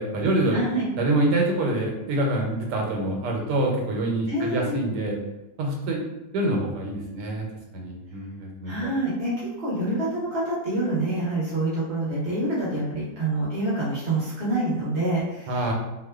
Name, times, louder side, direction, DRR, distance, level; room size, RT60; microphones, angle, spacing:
voice 1, 0.0-0.6 1.0-5.2 5.6-6.0 6.3-7.5 7.7-8.9 15.5-15.7, right 1 dB, 85° right, 0 dB, 1.2 m, -26 dB
voice 2, 0.5-0.9 4.3-4.8 8.6-15.7, right 2 dB, 50° right, -8 dB, 0.8 m, -27 dB
2.8 x 2.1 x 2.2 m, 0.99 s
omnidirectional pair, 1.8 m